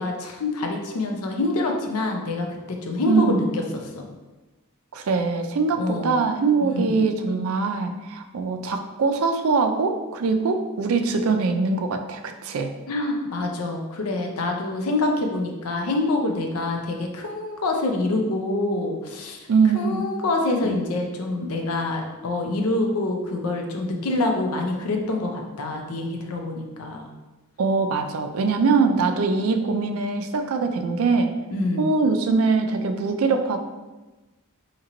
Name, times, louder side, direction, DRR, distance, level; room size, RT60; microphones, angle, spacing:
voice 1, 0.0-3.6 3.9-4.0 5.8-6.1 6.6-6.9 12.9-19.4 19.7-27.1 31.5-31.9, left 2 dB, 80° left, 3 dB, 0.6 m, -26 dB
voice 2, 3.1-3.4 4.9-12.7 19.5-20.0 20.6-20.9 27.6-31.3 31.8-33.6, right 4 dB, 70° right, 6 dB, 0.4 m, -22 dB
3.8 x 2.9 x 2.9 m, 1.2 s
head